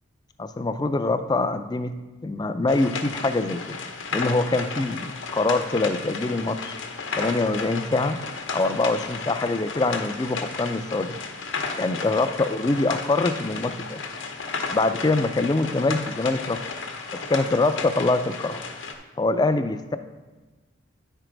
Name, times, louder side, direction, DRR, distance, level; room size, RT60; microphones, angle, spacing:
voice 1, 0.4-1.9 2.2-3.8 4.1-6.7 7.2-8.2 8.5-11.2 11.8-14.0 14.7-16.6 17.3-18.6 19.2-20.0, left 2 dB, 20° left, 10 dB, 0.4 m, -24 dB
sound 1, 2.7-18.9, left 4 dB, 80° left, 0.9 m, -33 dB
9.8 x 4.5 x 5.0 m, 1.2 s
head